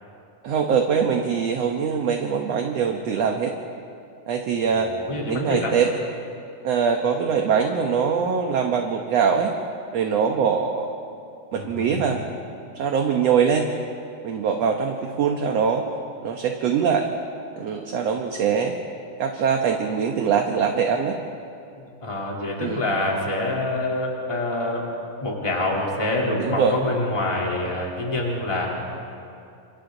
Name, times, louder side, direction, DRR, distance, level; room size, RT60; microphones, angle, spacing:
voice 1, 0.4-3.5 4.3-4.9 5.3-5.9 6.6-9.5 9.9-10.9 11.5-12.2 12.8-13.7 14.2-15.8 16.2-17.1 17.6-18.8 19.2-21.2 22.6-22.8 26.4-26.7, right 6 dB, 60° right, 3 dB, 1.9 m, -22 dB
voice 2, 4.7-5.8 11.5-12.0 21.7-24.9 25.2-28.7, left 2 dB, 10° left, -3 dB, 3.2 m, -26 dB
29.5 x 27.0 x 4.0 m, 2.5 s
omnidirectional pair, 4.0 m